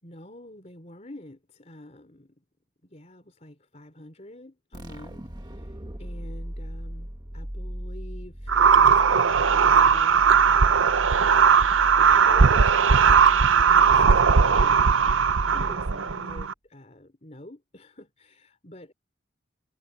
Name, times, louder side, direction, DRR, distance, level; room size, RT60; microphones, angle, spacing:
voice 1, 0.0-2.4 2.8-7.1 7.3-10.2 11.8-14.8 15.5-18.9, left 1 dB, 35° left, 3.8 m, -46 dB
sound 1, 4.7-16.2, equal, 20° right, 1.7 m, -36 dB
sound 2, 8.5-16.5, right 6 dB, 85° right, 0.7 m, -18 dB
head